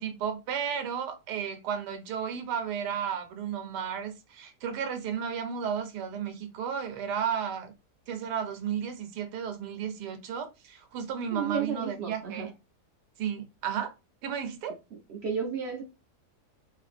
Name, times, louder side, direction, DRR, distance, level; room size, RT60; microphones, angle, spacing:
voice 1, 0.0-7.7 8.1-12.5 13.2-13.9 14.2-14.8, right 8 dB, 90° right, 1.3 m, -33 dB
voice 2, 11.3-12.5 15.1-15.8, right 6 dB, 65° right, 0.6 m, -32 dB
3.2 x 2.8 x 2.4 m
omnidirectional pair, 1.7 m